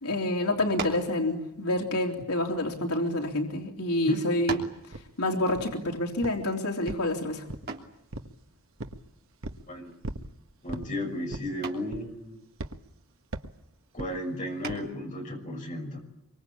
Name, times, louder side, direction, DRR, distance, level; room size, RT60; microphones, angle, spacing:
voice 1, 0.0-4.6 5.2-7.4, left 1 dB, 90° left, 1 dB, 3.6 m, -28 dB
sound 1, 0.7-1.2 2.1-3.3 3.9-4.0 4.5-4.9 7.7-8.0 9.9-10.3 10.7-11.0 11.6-12.0 14.6-15.1, right 4 dB, 45° right, 3.1 m, -38 dB
sound 2, 4.9-5.1 5.6-5.9 6.2-6.5 6.9-7.8 8.1-8.4 8.8-9.0 9.4-9.7 10.0-10.3 10.7-10.9 11.3-11.6 11.9-12.2 12.6-12.8 13.3-13.6 14.0-14.2 14.7-14.9, right 1 dB, 65° right, 1.4 m, -38 dB
voice 2, 10.6-12.4 13.9-16.0, left 1 dB, 35° left, 1 dB, 6.2 m, -34 dB
25.5 x 24.5 x 8.6 m, 0.78 s
head